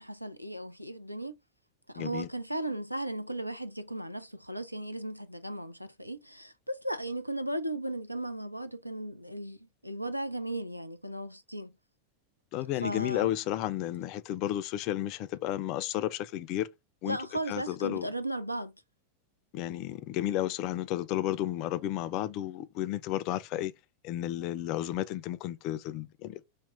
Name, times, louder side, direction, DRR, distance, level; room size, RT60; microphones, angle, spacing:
voice 1, 0.0-1.4 1.9-9.6 9.8-11.7 12.8-13.3 17.1-18.7, right 1 dB, 90° right, 0.4 m, -36 dB
voice 2, 2.0-2.3 12.5-16.7 17.0-17.2 17.5-18.1 19.5-23.7 24.0-26.5, left 13 dB, 40° left, 0.3 m, -32 dB
2.9 x 2.0 x 3.7 m
figure-of-eight pair, 90°, 0 cm